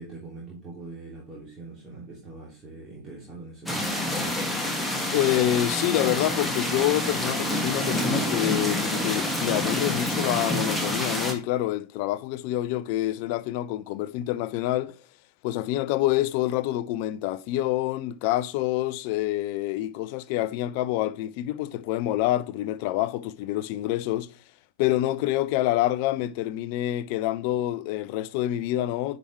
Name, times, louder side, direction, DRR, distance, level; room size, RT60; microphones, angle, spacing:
voice 1, 0.0-4.4, right 3 dB, 25° right, 2.7 m, -42 dB
sound 1, 3.7-11.3, left 1 dB, ahead, 1.6 m, -27 dB
voice 2, 5.1-15.0 15.4-24.3 24.8-29.2, left 14 dB, 45° left, 0.5 m, -27 dB
9.8 x 5.1 x 3.1 m
figure-of-eight pair, 90°, 0 cm